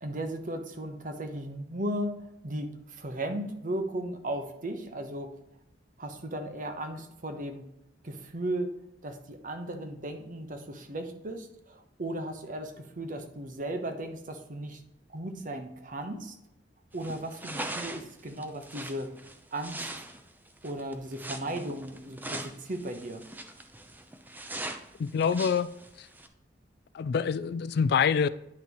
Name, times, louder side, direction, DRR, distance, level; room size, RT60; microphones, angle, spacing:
voice 1, 0.0-5.3 6.0-7.7 8.0-8.7 9.0-14.8 15.1-16.3 16.9-19.1 19.5-19.9 20.6-23.2, right 1 dB, 50° right, 0.9 m, -36 dB
sound 1, 16.9-26.3, right 1 dB, 10° right, 0.6 m, -41 dB
voice 2, 25.0-25.7 26.0-26.1 26.9-28.3, left 6 dB, 60° left, 0.3 m, -26 dB
9.8 x 5.8 x 3.0 m
head